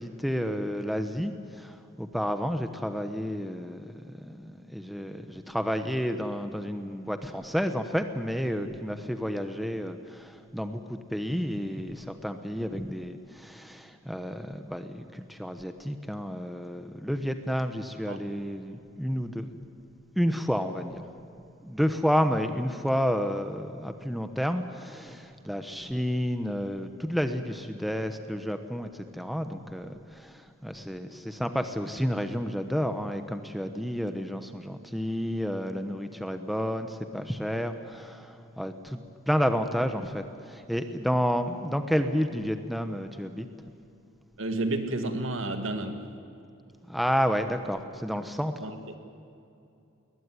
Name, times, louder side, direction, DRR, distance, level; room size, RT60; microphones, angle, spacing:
voice 1, 0.0-19.6 20.2-21.1 21.6-39.0 39.3-43.5 46.9-48.5, equal, ahead, 7 dB, 0.9 m, -30 dB
voice 2, 44.4-46.1 48.6-49.0, right 2 dB, 65° right, 6 dB, 2.2 m, -31 dB
21.0 x 20.0 x 9.7 m, 2.7 s
head